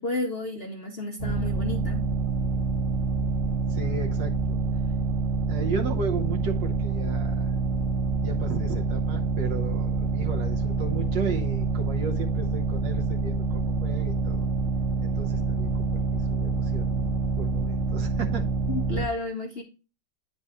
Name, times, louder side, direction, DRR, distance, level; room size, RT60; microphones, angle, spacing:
voice 1, 0.0-2.0 18.7-19.6, left 2 dB, 55° left, 0.6 m, -32 dB
sound 1, 1.2-19.1, right 4 dB, 45° right, 1.2 m, -26 dB
voice 2, 3.7-4.6 5.5-7.5 8.2-14.5 15.0-18.5, right 5 dB, 75° right, 1.5 m, -35 dB
9.8 x 4.1 x 3.5 m
omnidirectional pair, 2.0 m